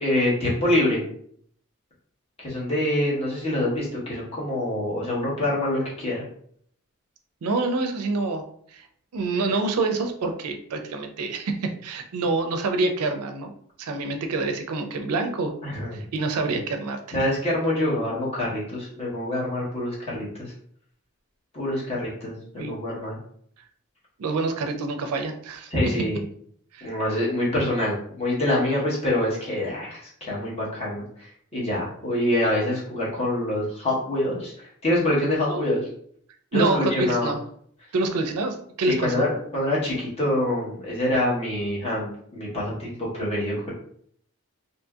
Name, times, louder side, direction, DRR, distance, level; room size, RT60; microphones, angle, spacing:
voice 1, 0.0-1.0 2.4-6.2 15.6-16.0 16.5-16.6 17.1-20.5 21.5-23.2 25.7-26.2 26.8-35.9 36.5-37.3 38.8-43.7, left 1 dB, 30° left, -6 dB, 1.0 m, -25 dB
voice 2, 7.4-8.4 8.7-8.9 9.1-13.5 13.8-15.5 15.9-17.2 22.6-22.7 24.2-25.7 26.7-26.9 35.5-35.6 36.5-37.4 37.9-39.2, right 3 dB, 85° right, 5 dB, 0.4 m, -26 dB
2.7 x 2.7 x 2.3 m, 0.63 s
head